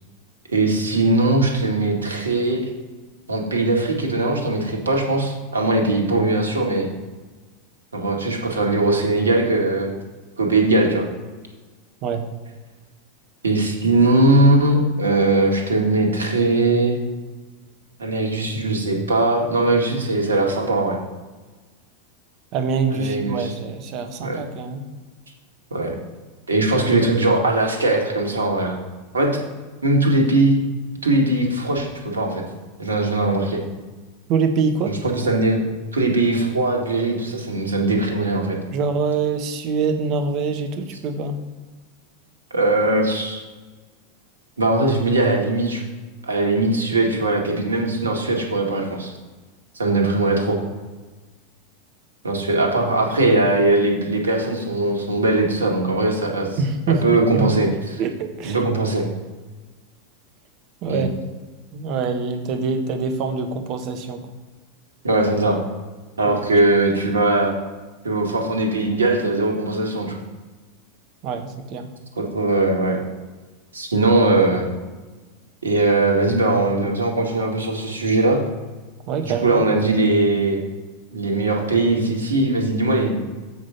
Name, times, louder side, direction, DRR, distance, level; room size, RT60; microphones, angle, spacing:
voice 1, 0.5-2.6 3.3-6.9 7.9-9.9 10.4-11.0 13.4-16.9 18.0-21.0 22.9-23.5 24.2-24.4 25.7-26.0 26.5-28.8 29.1-29.4 29.8-30.5 31.0-32.4 32.8-33.6 34.8-34.9 35.2-35.6 35.9-38.6 42.5-43.4 44.6-45.8 46.2-49.1 49.7-50.6 52.2-56.6 56.9-58.0 58.4-59.0 60.9-61.0 65.0-65.6 66.2-67.5 68.0-70.2 72.3-73.0 73.7-74.7 75.6-78.4 79.2-80.6 81.1-83.2, right 2 dB, 80° right, 1 dB, 1.8 m, -20 dB
voice 2, 22.5-24.8 34.3-35.0 38.7-41.3 56.6-57.5 58.0-58.6 60.8-61.1 61.7-64.2 66.2-66.4 71.2-71.9 79.1-79.6, right 5 dB, 45° right, 6 dB, 1.3 m, -24 dB
7.8 x 5.1 x 5.8 m, 1.3 s
figure-of-eight pair, 90°, 0 cm